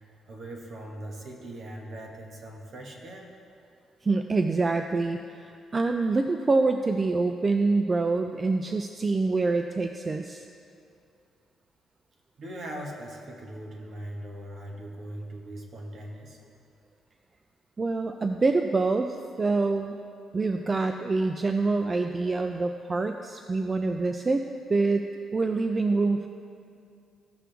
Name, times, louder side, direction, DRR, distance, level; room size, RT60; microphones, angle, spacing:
voice 1, 0.3-3.3 12.4-16.4 20.7-20.9, right 1 dB, 60° right, 0 dB, 1.7 m, -40 dB
voice 2, 4.0-10.4 17.8-20.0 20.3-24.4 24.7-26.3, right 3 dB, 30° right, 6 dB, 0.4 m, -26 dB
16.0 x 6.0 x 3.5 m, 2.4 s
cardioid pair, 90°, 0 cm